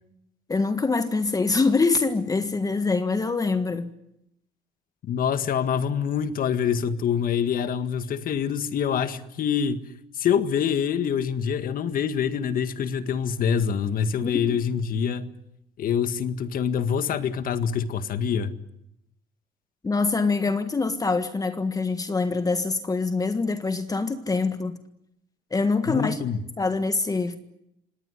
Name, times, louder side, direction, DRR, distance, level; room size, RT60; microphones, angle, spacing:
voice 1, 0.5-3.9 14.2-14.6 19.8-24.8 25.5-26.2 26.6-27.4, left 3 dB, 20° left, 1.6 m, -24 dB
voice 2, 5.0-9.8 10.2-15.3 15.8-18.5 25.9-26.4, left 7 dB, 55° left, 1.8 m, -25 dB
26.5 x 18.5 x 9.8 m
cardioid pair, 110°, 17 cm